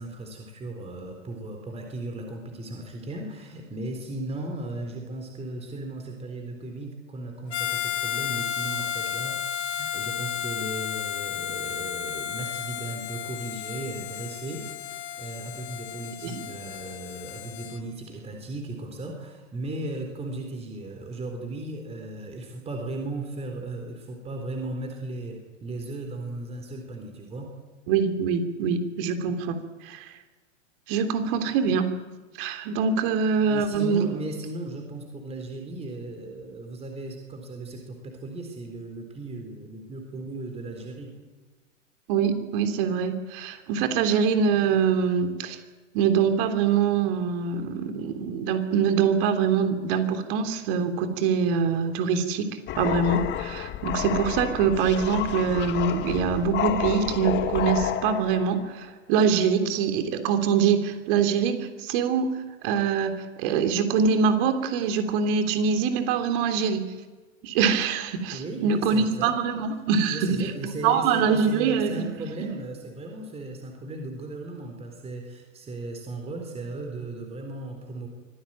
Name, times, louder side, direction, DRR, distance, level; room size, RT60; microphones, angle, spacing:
voice 1, 0.0-27.5 33.5-41.1 68.3-69.4 69.8-78.1, right 2 dB, 15° right, 3 dB, 3.9 m, -36 dB
Harmonica, 7.5-17.8, left 10 dB, 55° left, 2.6 m, -33 dB
voice 2, 27.9-29.6 29.8-30.1 30.9-31.9 32.4-34.1 42.1-45.6 45.9-52.5 52.7-62.3 62.6-66.9 67.4-72.1 72.4-72.5, right 6 dB, 45° right, 7 dB, 3.3 m, -24 dB
sound 1, 52.7-58.7, left 11 dB, 25° left, 1.5 m, -30 dB
25.0 x 16.0 x 9.0 m, 1.3 s
hypercardioid pair, 110°, 39 cm